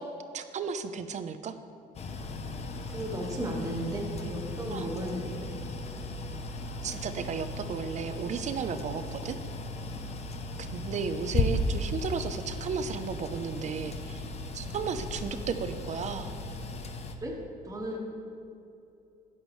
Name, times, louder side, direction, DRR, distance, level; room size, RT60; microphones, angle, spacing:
voice 1, 0.3-1.6 4.7-4.9 6.8-9.4 10.6-14.3 14.5-16.3, right 6 dB, 45° right, 10 dB, 0.6 m, -34 dB
sound 1, 1.9-17.1, left 2 dB, 40° left, 0.8 m, -36 dB
voice 2, 2.9-5.5 17.2-17.4 17.6-18.0, equal, 20° right, -1 dB, 1.5 m, -35 dB
13.0 x 8.7 x 3.2 m, 2.7 s
cardioid pair, 110°, 17 cm